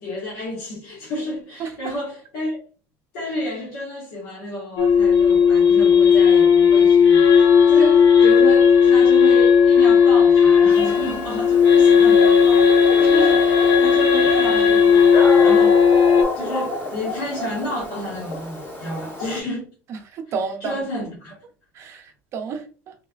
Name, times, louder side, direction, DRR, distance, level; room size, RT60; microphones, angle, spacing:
voice 1, 0.0-2.6 3.1-15.8 16.3-19.7 20.6-21.4, left 1 dB, 90° left, 1.6 m, -31 dB
voice 2, 1.6-1.9 19.9-20.8 21.7-22.9, right 5 dB, 45° right, 0.6 m, -31 dB
sound 1, 4.8-16.2, left 6 dB, 50° left, 0.8 m, -14 dB
Dog, 10.7-19.4, left 2 dB, 35° left, 1.6 m, -30 dB
3.5 x 3.1 x 2.3 m
cardioid pair, 140°, 6 cm